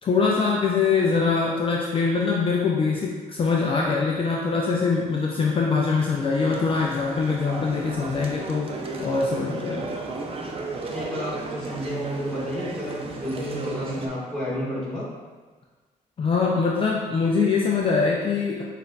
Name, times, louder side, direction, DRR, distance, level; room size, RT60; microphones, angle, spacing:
voice 1, 0.0-8.7 9.0-9.9 16.2-18.6, left 4 dB, 40° left, -2 dB, 0.4 m, -23 dB
sound 1, 6.4-14.1, right 3 dB, 40° right, 0.5 m, -34 dB
voice 2, 10.8-15.1, equal, 5° left, -8 dB, 1.5 m, -31 dB
6.3 x 2.5 x 2.2 m, 1.3 s
cardioid pair, 90°, 15 cm